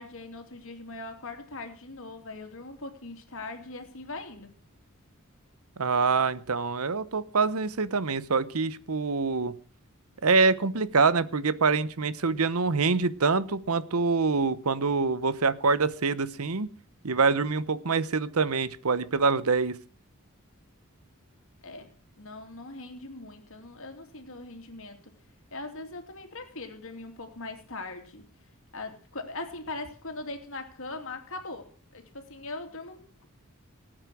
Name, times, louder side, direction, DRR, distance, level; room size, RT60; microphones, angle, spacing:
voice 1, 0.0-4.5 21.6-21.9 22.2-25.1 25.5-28.2 28.7-33.3, left 2 dB, 65° left, 2.9 m, -40 dB
voice 2, 5.8-9.5 10.2-16.7 17.0-19.8, right 4 dB, 80° right, 0.9 m, -25 dB
18.5 x 8.9 x 6.2 m
head